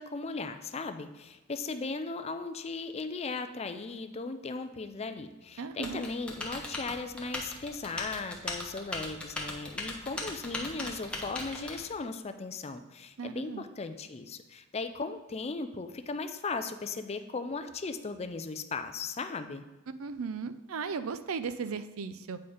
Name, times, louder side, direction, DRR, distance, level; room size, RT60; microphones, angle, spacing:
voice 1, 0.0-19.6, left 4 dB, 30° left, 9 dB, 0.4 m, -37 dB
voice 2, 5.6-6.0 13.2-13.6 20.0-22.4, right 5 dB, 75° right, 12 dB, 0.5 m, -36 dB
Typing, 5.8-11.8, left 2 dB, 5° left, 0.9 m, -38 dB
8.4 x 4.4 x 5.0 m, 1.1 s
head